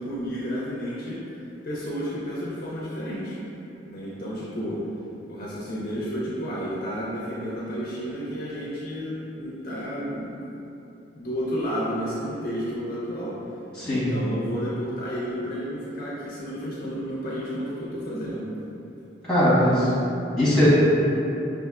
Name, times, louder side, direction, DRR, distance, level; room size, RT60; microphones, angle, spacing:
voice 1, 0.0-1.4 1.6-3.4 3.8-4.8 5.3-10.3 11.2-13.4 13.8-18.5, equal, 50° left, -7 dB, 0.5 m, -31 dB
voice 2, 13.8-14.1 19.3-19.9 20.4-20.7, equal, 5° left, -11 dB, 1.1 m, -20 dB
5.4 x 2.4 x 2.4 m, 3.0 s
head